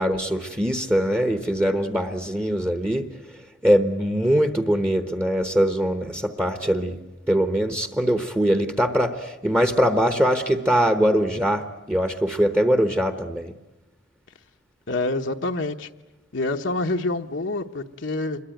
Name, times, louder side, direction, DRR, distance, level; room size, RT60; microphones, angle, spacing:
voice 1, 0.0-3.1 3.6-7.0 7.3-13.5, equal, 10° right, 7 dB, 1.0 m, -22 dB
voice 2, 14.9-15.9 16.3-18.4, left 2 dB, 65° left, 4 dB, 1.0 m, -27 dB
26.5 x 22.0 x 9.1 m, 1.0 s
head